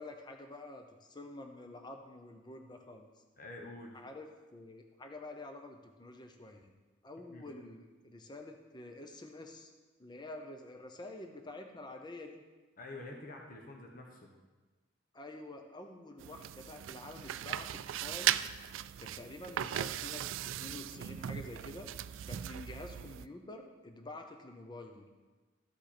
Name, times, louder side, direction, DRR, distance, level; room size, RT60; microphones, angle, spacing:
voice 1, 0.0-3.1 3.9-6.7 7.0-9.7 10.0-12.4 15.1-18.5 19.0-21.9 22.3-25.1, left 2 dB, 25° left, 4 dB, 0.8 m, -48 dB
voice 2, 3.4-4.0 7.3-7.5 12.8-14.3, left 2 dB, 45° left, 1 dB, 1.3 m, -47 dB
sound 1, 16.2-23.3, right 11 dB, 85° right, 0.3 m, -38 dB
13.5 x 5.3 x 4.4 m, 1.3 s
head